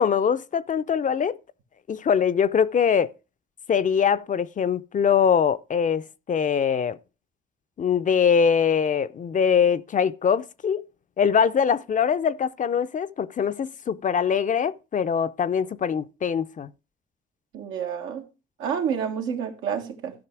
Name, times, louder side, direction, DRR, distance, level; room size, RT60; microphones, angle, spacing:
voice 1, 0.0-1.4 1.9-3.1 3.7-7.0 7.8-10.8 11.2-16.7, left 7 dB, 40° left, 0.5 m, -23 dB
voice 2, 17.5-18.3 18.6-20.1, right 7 dB, 90° right, 1.7 m, -29 dB
13.5 x 5.5 x 4.7 m
cardioid pair, 90°, 20 cm